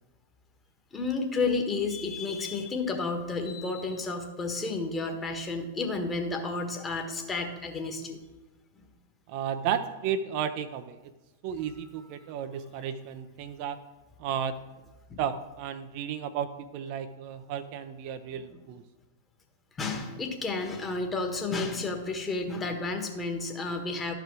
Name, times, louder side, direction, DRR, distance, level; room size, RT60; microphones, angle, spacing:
voice 1, 0.9-8.2 8.7-8.8 12.2-12.3 15.1-15.2 19.8-24.1, left 3 dB, 20° left, 4 dB, 1.5 m, -31 dB
voice 2, 9.3-11.0 11.4-13.8 14.2-14.6 15.2-18.8, right 8 dB, 45° right, 10 dB, 0.5 m, -33 dB
12.5 x 5.0 x 4.7 m, 1.1 s
figure-of-eight pair, 100°, 0 cm